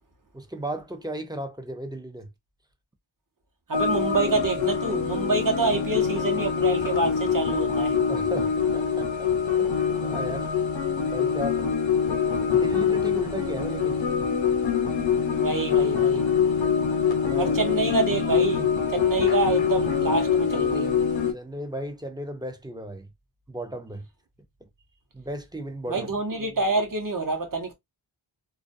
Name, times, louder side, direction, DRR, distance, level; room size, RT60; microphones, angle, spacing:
voice 1, 0.3-2.3 8.1-9.3 9.6-10.5 11.1-11.6 12.5-14.0 17.2-17.5 21.3-23.1 23.5-24.1 25.1-26.1, right 1 dB, 10° right, 0.5 m, -35 dB
sound 1, 3.7-21.3, left 7 dB, 70° left, 0.8 m, -24 dB
voice 2, 3.7-8.0 15.4-16.2 17.4-20.9 25.9-27.7, right 3 dB, 45° right, 0.8 m, -27 dB
2.3 x 2.2 x 2.5 m
wide cardioid pair, 55°, 47 cm